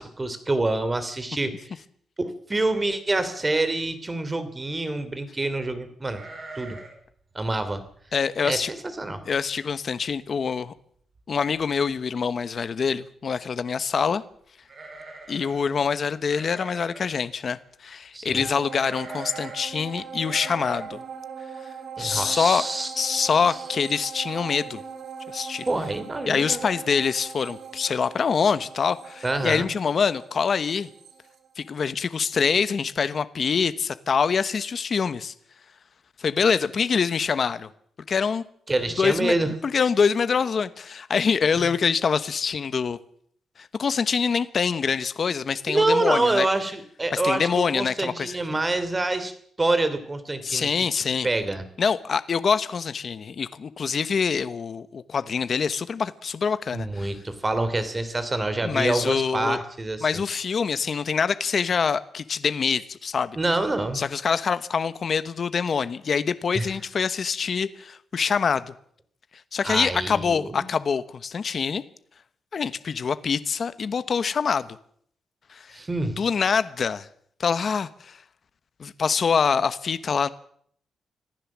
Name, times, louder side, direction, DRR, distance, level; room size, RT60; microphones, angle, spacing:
voice 1, 0.0-1.8 2.2-6.2 6.5-6.8 7.3-7.8 8.4-9.2 18.1-18.5 22.0-23.2 23.5-23.6 25.7-26.7 29.2-29.7 38.7-39.5 41.6-41.7 45.7-49.3 49.6-51.6 56.7-60.2 63.4-64.0 66.5-66.7 69.6-70.6 75.7-76.2, right 2 dB, 20° right, 3.0 m, -26 dB
sound 1, 6.1-7.1 7.3-7.4 7.9-8.2 8.7-8.8 9.1-9.6 9.9-10.0 11.2-11.3 11.6-12.0 14.6-15.7 16.2-17.2 18.7-19.7 20.2-20.8, right 2 dB, 40° right, 5.7 m, -42 dB
voice 2, 8.1-8.7 9.3-10.7 11.3-14.2 15.3-21.0 22.0-22.6 23.0-24.8 25.3-25.7 26.3-30.9 31.6-35.3 36.2-37.7 38.1-38.4 39.0-39.3 39.6-43.0 43.6-46.5 47.1-48.4 50.4-51.3 51.8-57.1 58.6-59.6 60.0-63.4 63.9-68.6 69.5-71.8 72.5-74.7 75.5-75.7 76.2-77.1 77.4-78.2 78.8-80.3, left 6 dB, 45° left, 1.1 m, -25 dB
sound 2, 18.4-32.0 32.4-32.5, right 6 dB, 60° right, 3.2 m, -40 dB
25.5 x 15.5 x 7.4 m
wide cardioid pair, 140°, 0 cm